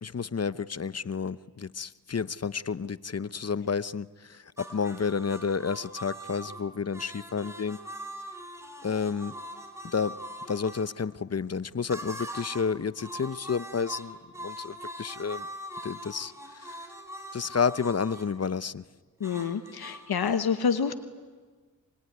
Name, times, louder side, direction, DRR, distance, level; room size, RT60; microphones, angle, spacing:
voice 1, 0.0-7.8 8.8-9.3 9.8-10.2 10.5-15.5 15.8-16.9 17.3-18.8, left 5 dB, 45° left, 16 dB, 0.8 m, -31 dB
sound 1, 4.6-10.9 11.9-12.7 13.0-18.3 19.2-20.0, equal, 5° right, 6.4 m, -42 dB
voice 2, 19.2-20.9, left 6 dB, 85° left, 9 dB, 1.2 m, -27 dB
25.0 x 22.5 x 9.5 m, 1.5 s
cardioid pair, 45°, 36 cm